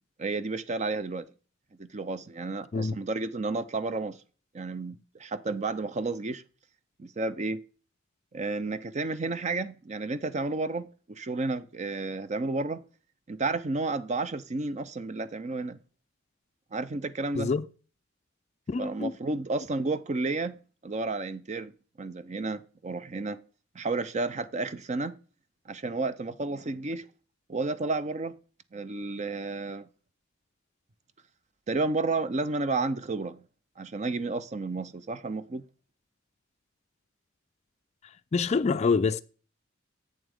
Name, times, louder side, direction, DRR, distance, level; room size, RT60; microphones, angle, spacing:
voice 1, 0.2-1.3 1.8-4.2 4.5-6.4 7.0-7.6 8.3-12.8 13.3-15.8 16.7-17.5 18.8-20.6 20.8-23.4 23.7-25.2 25.7-27.1 27.5-28.4 28.7-29.9 31.7-33.4 33.8-35.6, right 3 dB, 35° right, 0.5 m, -31 dB
voice 2, 18.7-19.1 38.3-39.2, left 4 dB, 35° left, 0.3 m, -26 dB
8.1 x 7.2 x 3.5 m
head